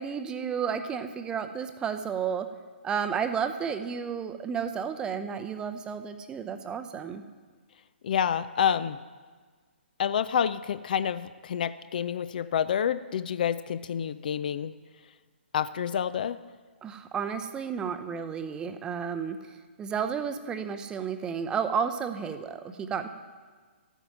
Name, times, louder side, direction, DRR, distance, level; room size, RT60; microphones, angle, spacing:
voice 1, 0.0-2.5 2.8-7.2 16.8-19.4 19.8-23.1, right 7 dB, 10° right, 8 dB, 0.6 m, -32 dB
voice 2, 8.0-9.0 10.0-14.7 15.5-16.4, left 8 dB, 45° left, 15 dB, 0.4 m, -28 dB
13.0 x 9.2 x 5.9 m, 1.5 s
figure-of-eight pair, 125°, 6 cm